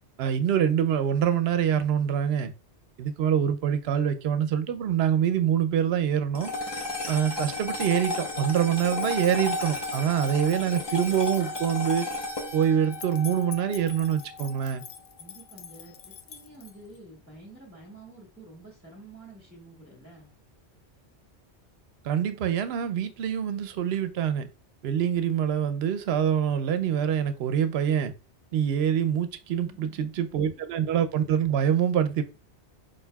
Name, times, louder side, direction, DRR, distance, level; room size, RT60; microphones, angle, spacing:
voice 1, 0.2-2.5 3.0-6.5 7.1-12.1 12.5-14.8 22.0-24.5 24.8-28.1 28.5-32.2, right 9 dB, 70° right, 0.8 m, -25 dB
sound 1, 6.4-14.9, left 2 dB, 25° left, 0.7 m, -33 dB
sound 2, 8.7-17.0, left 8 dB, 70° left, 0.8 m, -47 dB
voice 2, 15.2-20.3 29.5-30.8, right 2 dB, 10° right, 1.4 m, -49 dB
4.6 x 4.5 x 2.2 m
omnidirectional pair, 1.2 m